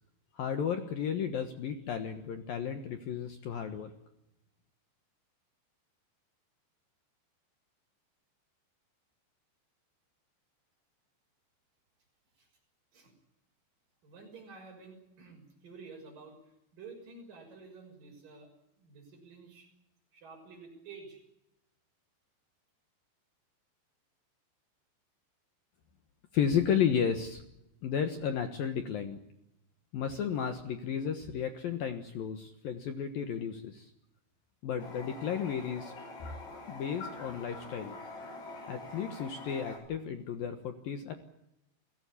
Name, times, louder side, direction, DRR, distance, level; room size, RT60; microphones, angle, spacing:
voice 1, 0.3-3.9 26.3-27.4 27.8-29.2 29.9-33.9 34.6-35.9 36.7-38.0 38.7-41.2, left 8 dB, 65° left, 7 dB, 2.7 m, -33 dB
voice 2, 14.0-16.4 16.7-18.5 18.8-19.7 20.1-21.2, right 4 dB, 45° right, 2 dB, 7.8 m, -50 dB
Toilet flush, 34.8-39.8, left 3 dB, 80° left, 9.8 m, -45 dB
29.5 x 17.0 x 8.5 m, 0.85 s
omnidirectional pair, 5.4 m